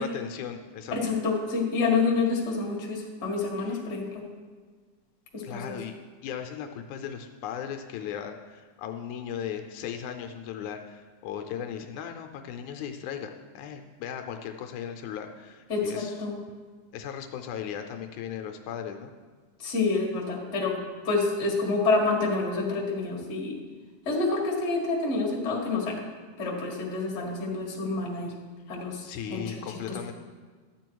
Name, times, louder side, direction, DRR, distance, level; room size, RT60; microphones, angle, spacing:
voice 1, 0.0-1.2 3.7-3.8 5.4-6.0 6.2-16.2 16.9-19.1 29.0-30.1, left 8 dB, 80° left, 5 dB, 2.0 m, -37 dB
voice 2, 1.0-4.2 5.3-5.8 15.7-16.4 19.6-20.8 21.0-23.5 24.1-26.0 26.4-28.3 28.7-29.0 29.3-29.5 29.9-30.0, left 3 dB, 30° left, -2 dB, 1.6 m, -28 dB
12.0 x 7.7 x 4.6 m, 1.5 s
omnidirectional pair, 3.5 m